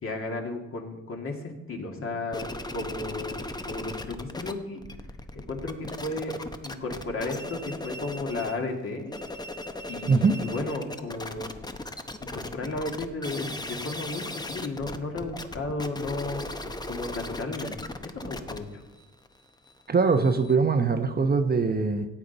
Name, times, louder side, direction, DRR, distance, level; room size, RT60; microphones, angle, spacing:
voice 1, 0.0-3.4 3.7-4.8 5.3-9.1 9.9-11.5 12.2-16.6 16.9-17.7 18.0-18.8, left 2 dB, 45° left, 2 dB, 2.2 m, -34 dB
sound 1, 2.3-4.5 4.8-8.6 9.0-20.6, left 2 dB, 15° left, 0.8 m, -38 dB
voice 2, 19.9-22.1, right 4 dB, 30° right, 6 dB, 0.9 m, -22 dB
14.5 x 8.5 x 4.0 m, 1.1 s
cardioid pair, 90°, 30 cm